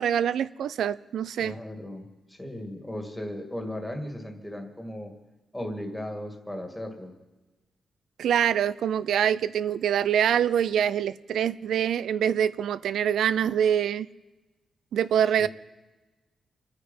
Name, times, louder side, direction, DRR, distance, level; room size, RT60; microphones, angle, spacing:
voice 1, 0.0-1.5 8.2-14.1 14.9-15.5, right 9 dB, 90° right, 0.4 m, -25 dB
voice 2, 1.3-5.1 5.5-7.1 15.4-15.5, left 1 dB, 5° left, 2.0 m, -36 dB
27.0 x 9.6 x 5.4 m
wide cardioid pair, 160°, 0 cm